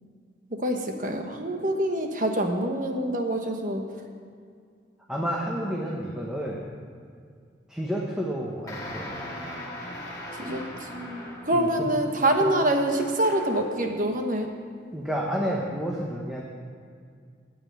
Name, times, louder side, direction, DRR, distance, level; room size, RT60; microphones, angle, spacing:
voice 1, 0.5-3.9 10.3-14.5, right 1 dB, 45° right, 4 dB, 1.2 m, -26 dB
voice 2, 5.1-6.7 7.7-9.2 11.5-11.7 14.9-16.4, equal, 5° right, -3 dB, 1.0 m, -30 dB
sound 1, 8.7-11.7 12.9-13.7, left 1 dB, 20° left, 2.1 m, -39 dB
9.2 x 8.8 x 8.7 m, 2.1 s
head